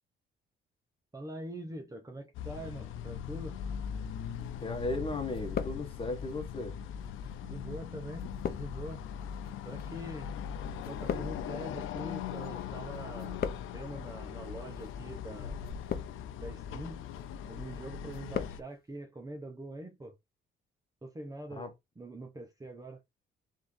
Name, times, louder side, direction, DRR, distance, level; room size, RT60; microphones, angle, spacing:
voice 1, 1.1-3.6 7.4-9.1 9.6-10.3 10.9-13.4 13.7-15.6 16.4-17.0 17.4-20.2 21.0-23.0, right 1 dB, 15° right, 1.0 m, -44 dB
sound 1, 2.3-18.6, left 8 dB, 85° left, 0.6 m, -40 dB
sound 2, 4.4-5.0 5.3-6.3 7.0-12.7 12.9-13.9 14.6-14.9 15.6-16.4 16.9-17.3 17.7-18.6 18.9-19.0, left 7 dB, 50° left, 0.7 m, -40 dB
voice 2, 4.6-6.8 21.6-21.7, left 2 dB, 25° left, 1.7 m, -36 dB
3.7 x 3.5 x 3.2 m
cardioid pair, 90°, 20 cm